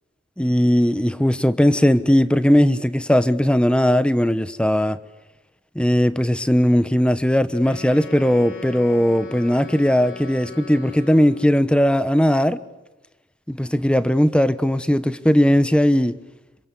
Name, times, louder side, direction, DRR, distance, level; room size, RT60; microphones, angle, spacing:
voice 1, 0.4-5.0 5.7-12.6 13.5-16.2, equal, 5° left, 0.9 m, -18 dB
Wind instrument woodwind instrument, 7.6-11.7, left 3 dB, 75° left, 4.2 m, -39 dB
26.5 x 26.0 x 8.4 m
head